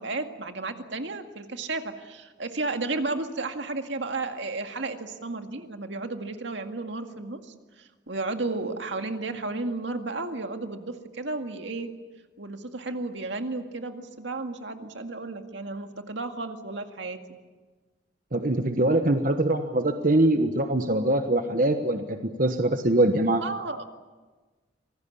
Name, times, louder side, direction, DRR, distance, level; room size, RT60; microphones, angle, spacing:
voice 1, 0.0-11.9 12.4-17.2 23.4-23.8, right 3 dB, 75° right, 5 dB, 2.1 m, -33 dB
voice 2, 18.3-23.4, right 1 dB, 45° right, 6 dB, 1.2 m, -23 dB
26.5 x 20.0 x 8.6 m, 1.3 s
head